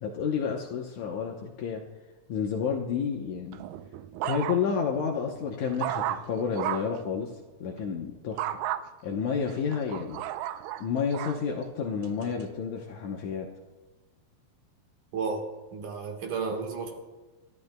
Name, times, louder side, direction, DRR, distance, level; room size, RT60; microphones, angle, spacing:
voice 1, 0.0-1.8 2.3-3.6 4.2-7.3 7.6-8.7 9.0-10.2 10.8-13.5, left 6 dB, 70° left, 1 dB, 2.0 m, -30 dB
Yorkshire's terrier bark, 3.5-4.9 5.3-7.0 8.4-8.8 9.5-11.4 12.0-12.4, right 13 dB, 80° right, 2.1 m, -34 dB
voice 2, 15.1-17.0, right 5 dB, 65° right, 3 dB, 2.7 m, -33 dB
28.5 x 13.5 x 2.2 m, 1.2 s
omnidirectional pair, 4.2 m